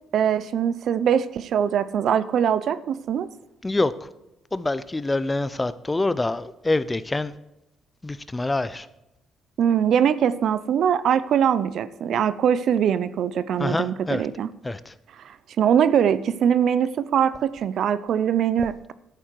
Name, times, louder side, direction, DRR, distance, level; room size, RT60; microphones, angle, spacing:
voice 1, 0.1-3.3 9.6-14.5 15.2-18.9, right 8 dB, 65° right, 16 dB, 0.6 m, -22 dB
voice 2, 3.6-4.1 4.5-7.4 8.0-8.9 13.6-14.3 14.6-14.9, left 2 dB, 20° left, 16 dB, 0.8 m, -26 dB
11.5 x 8.8 x 4.7 m, 0.92 s
supercardioid pair, 75°, 0 cm